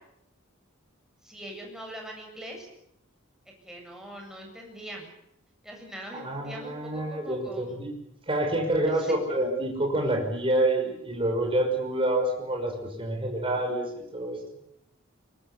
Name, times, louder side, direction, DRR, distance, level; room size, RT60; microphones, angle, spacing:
voice 1, 1.2-2.7 3.6-5.1 5.6-7.8 8.9-9.1, equal, 5° right, 0 dB, 7.9 m, -42 dB
voice 2, 6.1-7.9 8.3-14.4, right 1 dB, 25° right, 1 dB, 5.9 m, -27 dB
23.5 x 22.5 x 8.3 m, 0.78 s
head